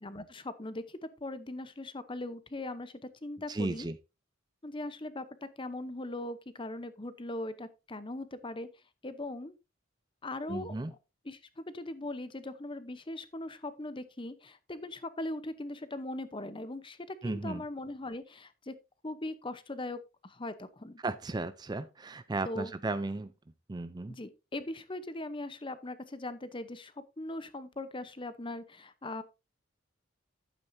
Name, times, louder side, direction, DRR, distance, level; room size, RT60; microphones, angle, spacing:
voice 1, 0.0-3.9 4.6-8.7 9.0-9.5 10.2-10.8 11.2-18.7 19.0-21.0 22.4-22.7 24.1-29.2, left 2 dB, 25° left, 0.8 m, -40 dB
voice 2, 3.5-4.0 10.5-10.9 17.2-17.6 21.0-23.3 23.7-24.2, right 2 dB, 20° right, 0.4 m, -35 dB
11.0 x 8.9 x 2.7 m
head